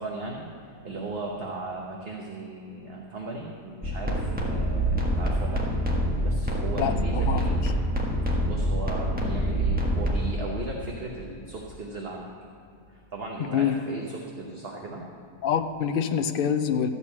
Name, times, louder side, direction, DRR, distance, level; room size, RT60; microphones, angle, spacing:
voice 1, 0.0-5.6 6.2-7.6 8.4-12.3 12.9-15.0, right 3 dB, 45° right, -1 dB, 1.2 m, -36 dB
sound 1, 3.8-10.2, right 1 dB, 5° right, 1.3 m, -26 dB
voice 2, 6.8-7.4 13.4-13.8 15.4-16.9, left 8 dB, 65° left, 8 dB, 0.5 m, -26 dB
13.5 x 5.4 x 8.5 m, 2.5 s
omnidirectional pair, 1.6 m